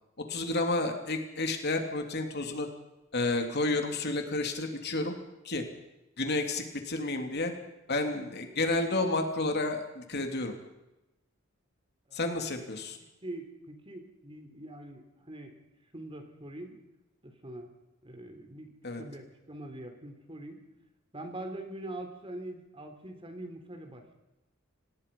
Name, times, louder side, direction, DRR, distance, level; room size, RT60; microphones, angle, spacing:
voice 1, 0.3-2.7 3.1-5.1 5.4-5.6 6.2-7.5 7.9-10.5 12.1-13.0 18.8-19.0, left 2 dB, 55° left, 4 dB, 3.1 m, -30 dB
voice 2, 13.2-15.5 15.9-16.8 17.2-17.7 18.0-18.7 19.0-20.6 21.1-24.2, right 1 dB, 25° right, 6 dB, 3.6 m, -43 dB
26.5 x 19.5 x 5.6 m, 0.96 s
head